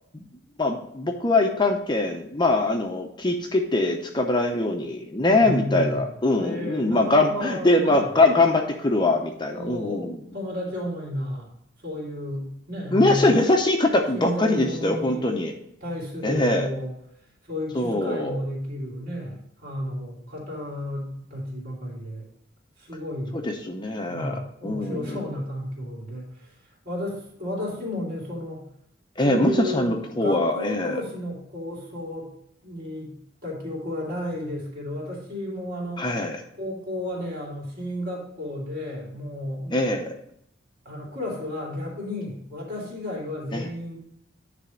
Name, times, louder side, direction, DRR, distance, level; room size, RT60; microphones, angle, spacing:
voice 1, 0.6-10.2 12.9-15.5 16.2-16.7 17.7-18.4 23.3-25.2 29.2-31.0 36.0-36.4 39.7-40.1 43.5-43.7, left 2 dB, 25° left, 3 dB, 0.7 m, -22 dB
voice 2, 5.2-6.0 6.4-8.1 9.5-10.1 10.3-11.5 11.8-13.3 14.1-15.2 15.8-17.0 17.5-22.3 22.8-23.4 24.1-26.5 26.8-28.6 29.2-32.3 32.6-33.1 33.4-36.1 36.6-39.8 40.8-44.0, left 1 dB, 45° right, -4 dB, 3.0 m, -32 dB
9.9 x 3.4 x 6.2 m, 0.74 s
head